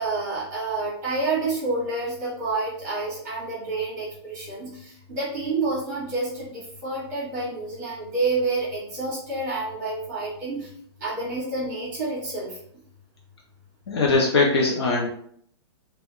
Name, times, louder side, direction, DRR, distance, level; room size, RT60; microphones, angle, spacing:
voice 1, 0.0-10.7 11.0-12.6, right 3 dB, 10° right, -7 dB, 1.0 m, -29 dB
voice 2, 13.9-15.1, left 3 dB, 65° left, -1 dB, 0.6 m, -21 dB
2.3 x 2.1 x 3.5 m, 0.64 s
hypercardioid pair, 180°, 15 cm